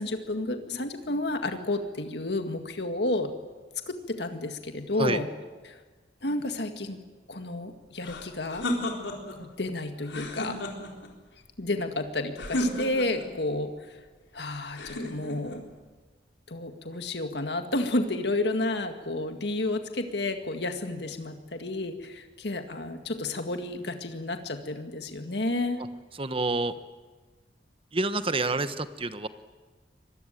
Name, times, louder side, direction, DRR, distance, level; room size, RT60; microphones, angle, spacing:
voice 1, 0.0-3.3 3.9-5.3 5.7-5.8 6.2-7.0 7.3-8.7 9.3-10.6 11.6-14.0 14.3-15.6 16.5-25.8, left 2 dB, 65° left, 6 dB, 2.0 m, -31 dB
sound 1, 8.0-9.4 10.0-11.1 12.4-13.3 14.7-15.6, left 1 dB, 85° left, 4.1 m, -32 dB
voice 2, 26.1-26.7 27.9-29.3, right 2 dB, 30° right, 12 dB, 1.1 m, -28 dB
25.0 x 20.5 x 9.2 m, 1.3 s
head